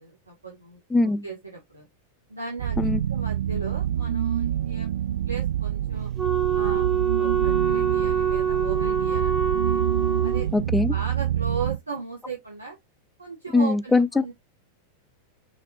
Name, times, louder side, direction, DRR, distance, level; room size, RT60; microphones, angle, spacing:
voice 1, 0.0-0.8 1.2-1.9 2.3-2.8 3.1-4.9 5.3-6.1 6.5-9.8 10.2-10.5 10.9-12.8 13.2-14.3, right 4 dB, 80° right, 1.5 m, -36 dB
voice 2, 0.9-1.3 2.8-3.0 10.5-10.9 13.5-14.2, left 3 dB, 10° left, 0.5 m, -21 dB
sound 1, 2.6-11.8, right 10 dB, 60° right, 0.4 m, -27 dB
Wind instrument woodwind instrument, 6.2-10.5, right 8 dB, 15° right, 1.5 m, -25 dB
5.6 x 3.4 x 2.3 m
figure-of-eight pair, 90°, 0 cm